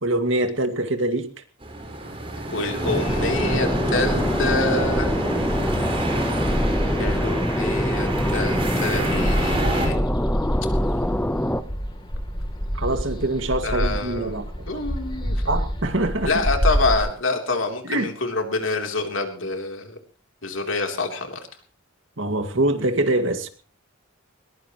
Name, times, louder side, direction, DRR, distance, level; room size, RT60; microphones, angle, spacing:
voice 1, 0.0-1.3 12.7-14.8 15.5-16.3 17.8-18.1 22.2-23.5, right 1 dB, 75° right, 2.2 m, -24 dB
sound 1, 1.6-9.9, right 1 dB, 30° right, 5.1 m, -27 dB
voice 2, 2.5-5.1 7.0-10.0 13.6-14.4 14.7-15.4 16.2-20.0 20.4-21.4, left 3 dB, 80° left, 3.5 m, -27 dB
sound 2, 2.8-11.6, left 1 dB, 10° left, 0.9 m, -26 dB
sound 3, 3.1-17.0, equal, 25° left, 3.1 m, -28 dB
21.0 x 20.5 x 3.1 m
head